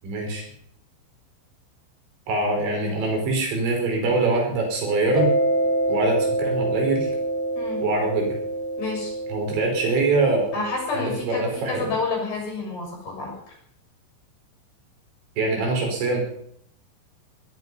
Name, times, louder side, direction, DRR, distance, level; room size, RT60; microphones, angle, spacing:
voice 1, 0.0-0.5 2.3-5.3 5.9-7.1 7.8-8.3 9.3-10.5 11.0-11.9 15.4-16.2, right 3 dB, 65° right, 1 dB, 7.4 m, -23 dB
Mallet percussion, 5.1-11.5, right 1 dB, 10° right, 3.8 m, -26 dB
voice 2, 8.8-9.1 10.5-13.3, left 4 dB, 55° left, 0 dB, 8.6 m, -29 dB
18.0 x 13.5 x 5.7 m, 0.70 s
omnidirectional pair, 5.6 m